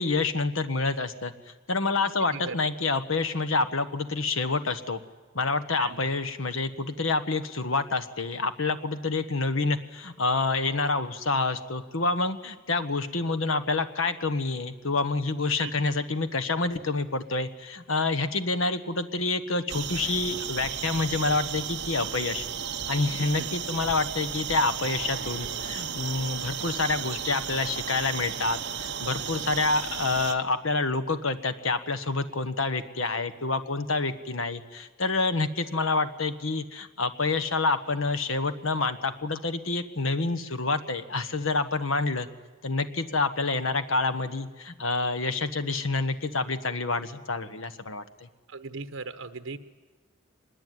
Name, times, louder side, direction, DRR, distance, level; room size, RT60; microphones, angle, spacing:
voice 1, 0.0-1.3 1.7-5.0 5.3-22.4 22.9-42.3 42.6-48.0, left 3 dB, 75° left, 10 dB, 1.3 m, -28 dB
sound 1, 19.7-30.3, right 8 dB, 55° right, 1.2 m, -34 dB
voice 2, 48.5-49.6, right 4 dB, 80° right, 8 dB, 1.1 m, -38 dB
24.0 x 20.5 x 9.3 m, 1.3 s
head